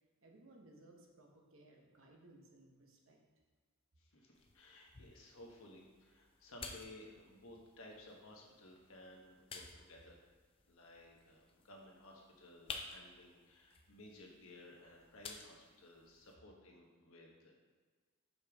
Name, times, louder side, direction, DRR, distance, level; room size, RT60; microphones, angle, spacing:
voice 1, 0.2-3.2, right 2 dB, 65° right, 1 dB, 1.0 m, -62 dB
voice 2, 4.0-10.2 10.7-17.5, left 1 dB, 70° left, 0 dB, 1.2 m, -57 dB
sound 1, 4.3-16.3, left 4 dB, 25° left, 0.4 m, -54 dB
6.7 x 5.4 x 3.5 m, 1.5 s
head